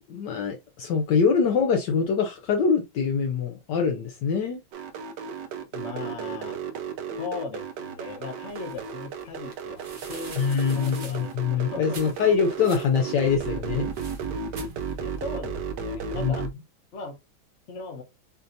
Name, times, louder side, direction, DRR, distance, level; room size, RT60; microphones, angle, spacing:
voice 1, 0.1-4.6 10.4-13.9 16.1-16.4, left 6 dB, 75° left, 1.1 m, -24 dB
sound 1, 4.7-16.5, right 6 dB, 65° right, 1.2 m, -34 dB
voice 2, 5.7-6.6 7.2-10.5 10.7-12.0 15.0-16.5 16.9-17.2 17.7-18.0, left 3 dB, 45° left, 1.1 m, -38 dB
sound 2, 8.5-15.4, right 4 dB, 85° right, 0.4 m, -47 dB
6.6 x 2.7 x 2.6 m
omnidirectional pair, 2.2 m